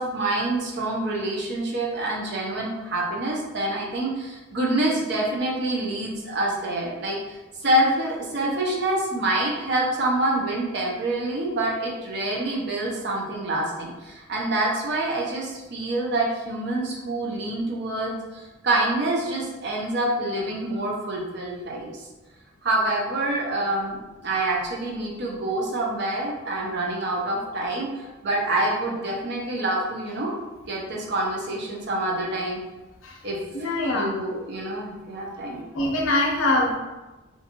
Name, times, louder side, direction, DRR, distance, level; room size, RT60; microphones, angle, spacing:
voice 1, 0.0-22.1 22.6-30.3 30.7-32.6 33.2-33.7 33.9-35.6, right 1 dB, 50° right, -2 dB, 0.5 m, -26 dB
voice 2, 33.5-34.1 35.7-36.8, left 2 dB, 75° left, -1 dB, 0.6 m, -23 dB
2.5 x 2.3 x 2.8 m, 1.1 s
head